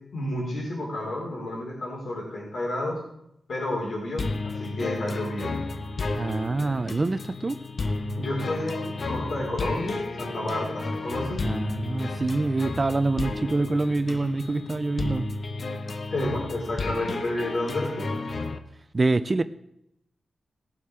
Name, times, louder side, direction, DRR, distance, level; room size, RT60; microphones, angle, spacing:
voice 1, 0.1-3.0 3.5-5.5 8.2-11.4 16.1-18.1, left 1 dB, 65° left, -3 dB, 4.4 m, -30 dB
sound 1, 4.2-18.6, left 3 dB, 50° left, 0.9 m, -32 dB
voice 2, 6.1-7.6 11.4-15.3 18.9-19.4, right 3 dB, 30° right, 12 dB, 0.5 m, -26 dB
18.0 x 7.3 x 4.9 m, 0.79 s
cardioid pair, 80°, 0 cm